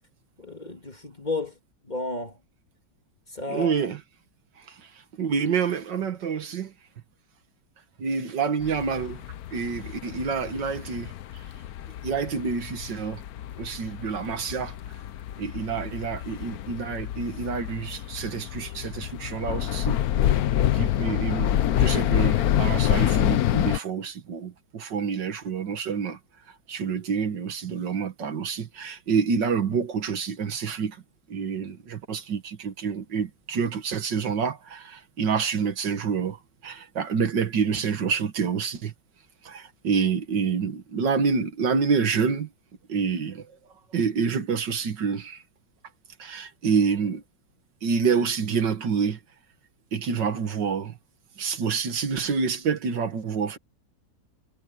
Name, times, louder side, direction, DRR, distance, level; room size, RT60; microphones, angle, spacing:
voice 1, 0.4-1.5 1.8-2.4 3.3-3.9, left 2 dB, 25° left, 2.2 m, -32 dB
voice 2, 3.5-4.0 4.7-4.9 5.2-6.7 8.0-9.2 9.5-11.1 12.0-13.2 13.6-14.8 15.4-20.0 20.7-26.2 26.7-31.0 31.3-38.9 39.4-42.5 42.9-43.5 43.9-45.4 46.2-47.2 47.8-49.2 49.9-51.0 51.4-53.6, right 6 dB, 75° right, 2.1 m, -27 dB
sound 1, 8.6-23.8, left 11 dB, 65° left, 1.1 m, -27 dB
omnidirectional pair, 2.0 m